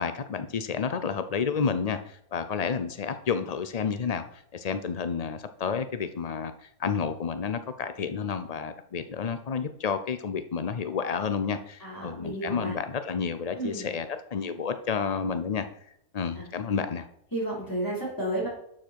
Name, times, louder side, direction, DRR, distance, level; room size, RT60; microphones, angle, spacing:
voice 1, 0.0-15.7 16.1-17.1, left 6 dB, 85° left, 10 dB, 0.3 m, -30 dB
voice 2, 11.8-12.7 13.5-13.9 16.3-16.4 17.3-18.5, right 1 dB, 10° left, -5 dB, 4.7 m, -32 dB
11.5 x 7.4 x 4.6 m, 0.72 s
omnidirectional pair, 1.7 m